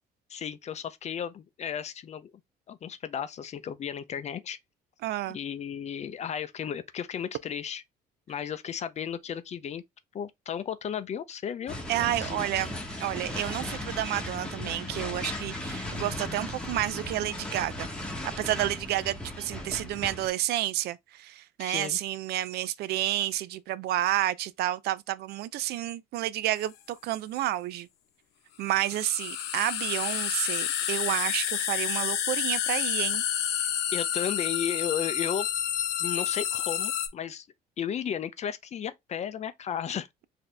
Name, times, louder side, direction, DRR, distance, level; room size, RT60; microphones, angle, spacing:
voice 1, 0.3-2.3 2.7-4.6 5.3-7.8 8.3-9.8 10.1-11.8 12.1-12.4 21.6-22.0 33.9-35.5 36.0-37.5 37.8-40.1, left 8 dB, 40° left, 0.5 m, -34 dB
voice 2, 5.0-5.4 11.9-17.9 18.4-27.9 28.6-33.2, right 14 dB, 70° right, 0.4 m, -30 dB
sound 1, 11.7-20.3, left 1 dB, 5° left, 1.1 m, -36 dB
sound 2, 26.6-26.7 28.7-37.1, left 10 dB, 90° left, 0.9 m, -29 dB
4.1 x 2.8 x 3.2 m
cardioid pair, 110°, 17 cm